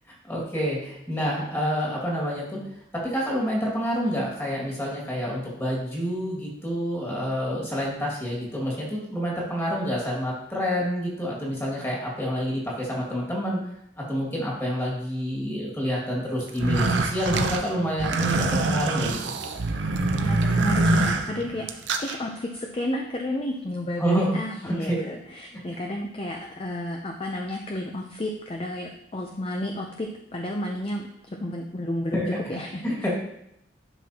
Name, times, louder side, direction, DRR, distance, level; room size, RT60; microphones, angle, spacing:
voice 1, 0.1-2.6 2.9-13.6 14.0-19.3 24.0-24.3 24.6-25.0 32.1-32.4 32.8-33.1, equal, 15° left, -4 dB, 2.1 m, -28 dB
sound 1, 16.5-22.1, right 2 dB, 75° right, 0.7 m, -24 dB
voice 2, 20.1-32.2 32.5-32.8, left 1 dB, 30° left, 2 dB, 0.5 m, -32 dB
11.0 x 6.0 x 2.9 m, 0.79 s
head